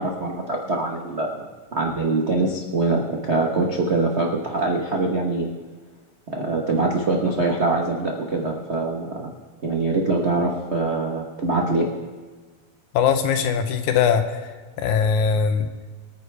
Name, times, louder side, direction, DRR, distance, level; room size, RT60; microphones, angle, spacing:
voice 1, 0.0-5.5 6.3-9.3 9.6-11.9, right 2 dB, 75° right, 0 dB, 0.6 m, -23 dB
voice 2, 12.9-14.5 14.8-15.7, left 6 dB, 85° left, 7 dB, 2.4 m, -21 dB
24.5 x 9.4 x 3.4 m, 1.4 s
omnidirectional pair, 3.3 m